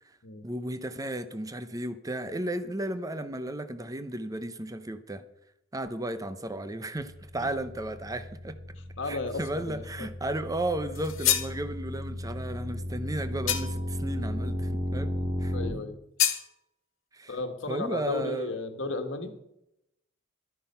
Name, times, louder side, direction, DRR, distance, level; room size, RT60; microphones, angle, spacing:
voice 1, 0.4-5.2 5.7-8.6 9.1-15.1 15.4-15.5 17.1-17.4 17.7-18.5, right 1 dB, 15° right, 11 dB, 0.7 m, -34 dB
sound 1, 7.0-15.7, equal, 40° right, 3.3 m, -35 dB
voice 2, 9.0-10.1 15.2-16.0 17.3-19.3, left 3 dB, 65° left, 6 dB, 1.7 m, -35 dB
sound 2, 10.9-11.6 13.5-13.9 16.2-16.5, left 11 dB, 85° left, 1.5 m, -27 dB
12.5 x 9.9 x 5.6 m, 0.81 s
head